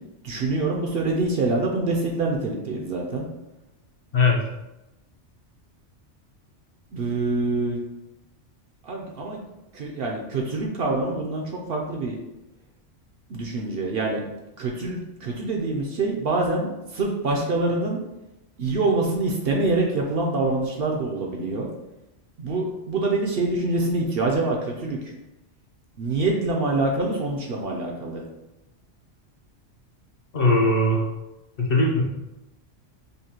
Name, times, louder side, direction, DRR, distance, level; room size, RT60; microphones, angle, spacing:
voice 1, 0.2-3.3 6.9-7.8 8.9-9.4 9.7-12.2 13.3-14.2 14.6-18.0 18.6-21.7 22.4-25.0 26.0-28.2, right 2 dB, 60° right, 0 dB, 0.7 m, -25 dB
voice 2, 30.3-31.0 31.6-32.0, left 2 dB, 55° left, -2 dB, 0.9 m, -19 dB
5.3 x 2.1 x 2.9 m, 0.95 s
omnidirectional pair, 1.2 m